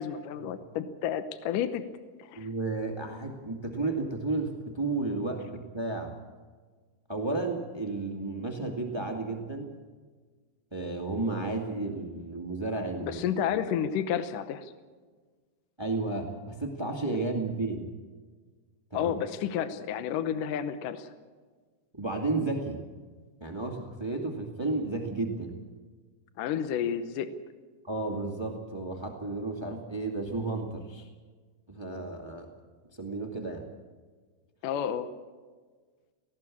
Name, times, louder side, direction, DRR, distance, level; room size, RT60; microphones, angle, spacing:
voice 1, 0.0-1.8 2.2-2.5 13.0-14.7 18.9-21.1 26.4-27.3 34.6-35.1, left 9 dB, 70° left, 11 dB, 2.2 m, -31 dB
voice 2, 2.4-6.2 7.1-9.7 10.7-13.2 15.8-17.9 18.9-19.1 21.9-22.8 23.4-25.5 27.8-31.1 31.7-32.5 33.0-33.6, right 3 dB, 25° right, 3 dB, 0.6 m, -32 dB
18.5 x 17.0 x 8.5 m, 1.4 s
omnidirectional pair, 4.6 m